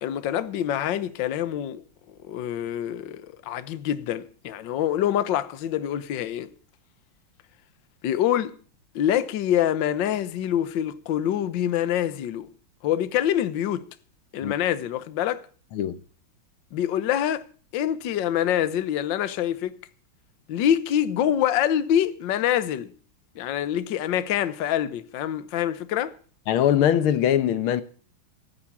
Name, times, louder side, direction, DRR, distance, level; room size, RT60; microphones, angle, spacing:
voice 1, 0.0-6.5 8.0-8.5 8.9-12.5 12.8-13.8 14.3-15.5 16.7-17.5 17.7-19.8 20.5-22.9 23.3-26.2, left 10 dB, 70° left, 1.5 m, -25 dB
voice 2, 26.5-27.8, left 10 dB, 85° left, 1.8 m, -21 dB
14.5 x 9.7 x 8.6 m
omnidirectional pair, 2.2 m